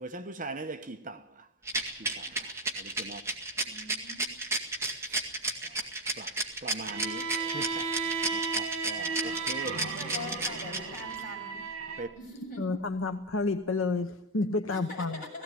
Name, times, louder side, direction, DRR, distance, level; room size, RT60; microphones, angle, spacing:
voice 1, 0.0-1.5 2.0-3.2 5.0-5.2 5.6-5.9 6.2-9.8 12.0-12.1, right 2 dB, 35° right, 1.0 m, -42 dB
Rattle, 1.7-11.2, right 2 dB, 15° right, 1.9 m, -32 dB
voice 2, 3.6-4.2 9.7-11.6 12.1-12.7 14.7-15.4, left 2 dB, 40° left, 7.2 m, -42 dB
Bowed string instrument, 6.9-12.1, right 4 dB, 75° right, 2.6 m, -34 dB
voice 3, 12.6-15.2, left 3 dB, 65° left, 0.9 m, -30 dB
17.0 x 17.0 x 9.2 m
head